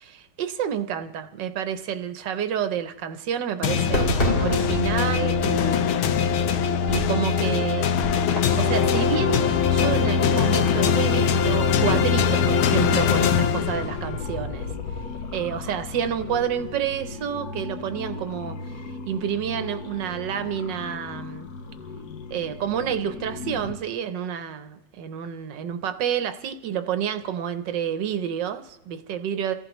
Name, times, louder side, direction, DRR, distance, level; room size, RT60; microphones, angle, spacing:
voice 1, 0.0-6.1 6.9-7.9 8.5-14.7 15.3-18.8 19.1-21.5 22.3-29.5, right 8 dB, 70° right, 10 dB, 1.3 m, -29 dB
sound 1, 3.6-14.2, left 7 dB, 90° left, 1.6 m, -22 dB
Fireworks, 3.9-9.0, left 1 dB, 30° left, 1.9 m, -30 dB
sound 2, 8.4-23.7, left 4 dB, 60° left, 1.2 m, -36 dB
29.0 x 14.5 x 3.0 m, 0.90 s
omnidirectional pair, 2.2 m